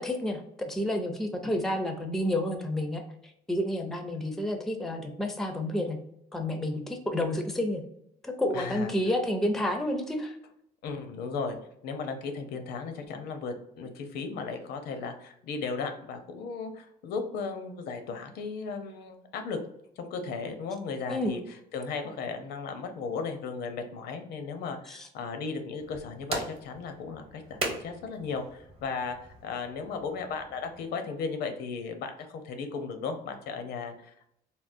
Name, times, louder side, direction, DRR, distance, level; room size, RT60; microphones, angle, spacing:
voice 1, 0.0-3.0 3.5-6.0 6.3-7.8 8.2-10.4 21.1-21.4 24.9-25.1, left 1 dB, ahead, 5 dB, 0.4 m, -30 dB
voice 2, 8.5-8.9 10.8-11.6 11.8-19.6 20.0-21.4 21.7-34.3, left 5 dB, 75° left, 6 dB, 0.6 m, -36 dB
sound 1, 25.8-30.9, right 2 dB, 35° right, 0.9 m, -40 dB
3.6 x 2.1 x 2.5 m, 0.75 s
cardioid pair, 110°, 17 cm